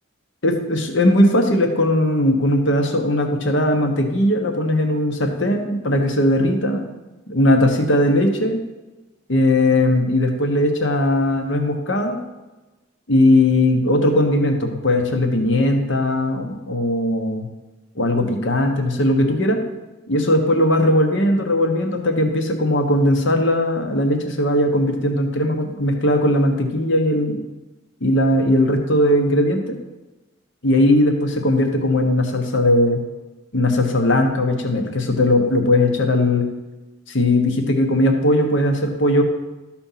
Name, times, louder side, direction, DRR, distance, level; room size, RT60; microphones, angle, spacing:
voice 1, 0.4-6.8 7.3-8.6 9.3-12.2 13.1-17.5 17.9-19.6 20.1-27.4 28.0-29.7 30.6-33.0 33.5-36.4 37.1-39.2, left 1 dB, 70° left, 4 dB, 1.2 m, -18 dB
13.0 x 4.4 x 5.7 m, 1.1 s
head